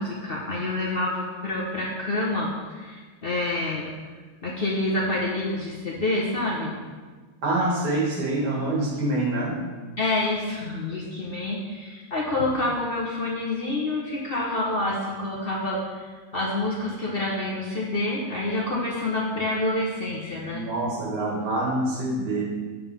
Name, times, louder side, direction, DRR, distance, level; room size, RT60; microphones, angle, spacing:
voice 1, 0.0-3.9 4.4-6.7 10.0-20.6, left 2 dB, 45° left, -4 dB, 0.8 m, -27 dB
voice 2, 7.4-9.6 20.5-22.5, right 2 dB, 70° right, -3 dB, 2.1 m, -26 dB
7.1 x 3.7 x 5.5 m, 1.4 s
omnidirectional pair, 1.8 m